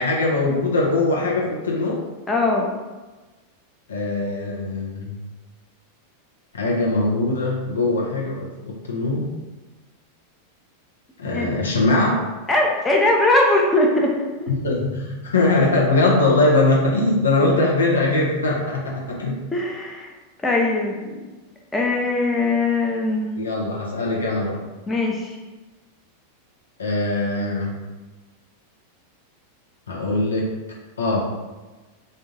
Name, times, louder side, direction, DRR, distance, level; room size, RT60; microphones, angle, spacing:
voice 1, 0.0-2.0 3.9-5.2 6.5-9.3 11.2-12.2 14.5-19.4 23.4-24.6 26.8-27.8 29.9-30.5 31.0-31.2, left 2 dB, 70° left, -3 dB, 0.9 m, -21 dB
voice 2, 2.3-2.7 11.3-11.5 12.5-14.5 19.5-20.1 20.4-21.2 21.7-23.4 24.9-25.4, left 2 dB, 15° left, -1 dB, 0.6 m, -20 dB
3.7 x 2.6 x 4.0 m, 1.2 s
figure-of-eight pair, 90°, 0 cm